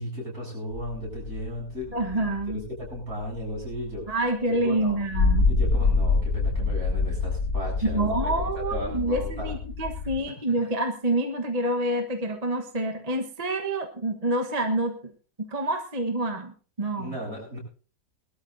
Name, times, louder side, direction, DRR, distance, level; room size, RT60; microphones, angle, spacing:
voice 1, 0.0-4.2 4.5-5.0 5.5-9.5 10.2-10.6 16.9-17.6, equal, 60° right, -2 dB, 8.2 m, -36 dB
sound 1, 0.7-4.0 4.8-10.2, left 3 dB, 85° left, 2.9 m, -26 dB
voice 2, 1.9-2.6 4.1-5.5 7.8-15.1 15.4-17.2, right 1 dB, 25° right, 4 dB, 1.2 m, -27 dB
22.5 x 12.5 x 2.6 m, 0.38 s
omnidirectional pair, 1.7 m